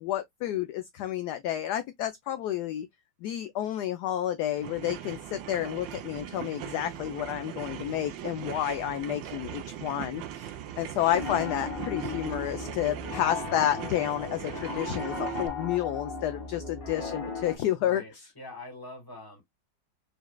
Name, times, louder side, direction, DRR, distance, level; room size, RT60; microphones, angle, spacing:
voice 1, 0.0-2.9 3.2-10.5 10.8-18.0, left 12 dB, 70° left, 1.0 m, -30 dB
sound 1, 4.5-15.5, right 10 dB, 80° right, 1.4 m, -39 dB
Piano, 11.1-17.6, left 4 dB, 30° left, 1.6 m, -37 dB
voice 2, 17.8-19.4, left 2 dB, 10° left, 1.7 m, -44 dB
4.8 x 3.1 x 2.2 m
omnidirectional pair, 2.0 m